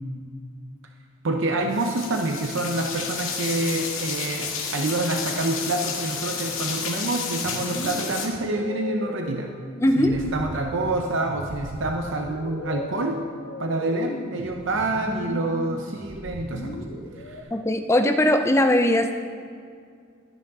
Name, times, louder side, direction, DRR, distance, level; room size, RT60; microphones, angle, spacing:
voice 1, 1.2-9.5 10.0-13.2 13.6-16.8 17.2-17.5, right 2 dB, 70° right, 3 dB, 0.7 m, -27 dB
sound 1, 1.7-8.3, left 6 dB, 90° left, 1.9 m, -31 dB
sound 2, 7.4-17.4, left 1 dB, 55° left, 1.4 m, -36 dB
voice 2, 9.8-10.2 17.5-19.1, left 1 dB, 15° left, 7 dB, 0.5 m, -20 dB
13.0 x 10.0 x 3.6 m, 2.2 s
head